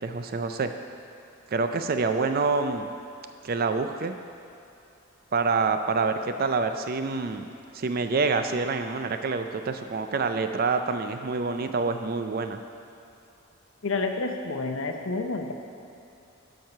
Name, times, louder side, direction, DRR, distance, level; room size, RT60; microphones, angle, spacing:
voice 1, 0.0-0.7 1.5-2.9 3.4-4.1 5.3-7.4 7.7-12.6, right 4 dB, 45° right, 8 dB, 0.4 m, -27 dB
voice 2, 13.8-15.6, left 3 dB, 65° left, 5 dB, 0.7 m, -29 dB
12.5 x 4.6 x 5.6 m, 2.7 s
head